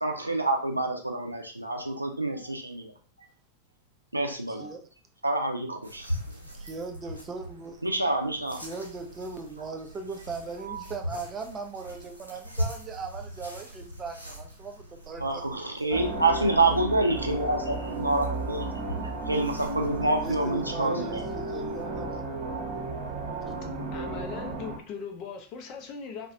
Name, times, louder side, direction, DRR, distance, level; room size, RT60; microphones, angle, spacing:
voice 1, 0.0-2.9 4.1-4.7 5.2-6.2 7.8-8.6 10.7-10.8 15.2-18.8 19.3-21.3, right 2 dB, 85° right, 0.4 m, -27 dB
voice 2, 4.5-4.9 6.4-7.9 8.6-15.6 15.9-16.0 20.0-22.2 23.5-23.6, right 4 dB, 25° right, 0.4 m, -39 dB
sound 1, 5.8-21.8, equal, 90° left, 0.7 m, -41 dB
sound 2, 15.9-24.8, right 2 dB, 40° right, 0.8 m, -34 dB
voice 3, 23.9-26.3, left 5 dB, 40° left, 0.5 m, -39 dB
2.3 x 2.1 x 2.6 m
figure-of-eight pair, 90°, 0 cm